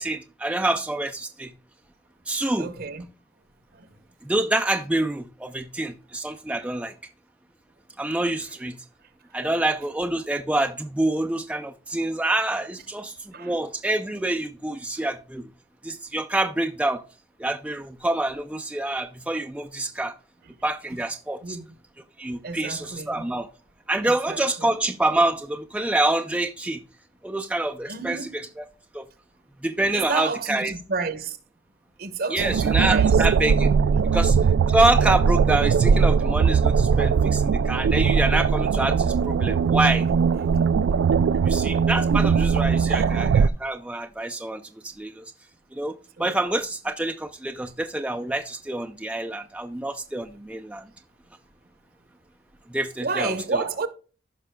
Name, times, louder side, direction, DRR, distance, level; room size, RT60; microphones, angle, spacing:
voice 1, 0.0-1.5 2.3-2.7 4.2-6.9 8.0-8.8 9.3-15.5 15.8-17.0 17.4-20.1 20.6-21.6 22.2-23.5 23.9-26.8 27.2-28.7 28.9-29.1 29.6-30.7 32.3-33.7 34.1-34.4 34.7-40.1 41.4-45.2 45.7-50.9 52.7-53.6, right 2 dB, 5° right, 0.4 m, -26 dB
voice 2, 2.6-3.0 3.7-3.9 13.3-13.5 21.4-21.6 22.4-23.2 24.0-24.7 27.9-28.3 29.9-31.4 32.0-33.2 34.0-34.2 41.7-41.8 42.8-43.1 46.2-46.3 53.0-53.9, right 4 dB, 55° right, 0.9 m, -31 dB
sound 1, 32.4-43.5, right 6 dB, 85° right, 0.3 m, -20 dB
15.0 x 5.8 x 2.2 m
head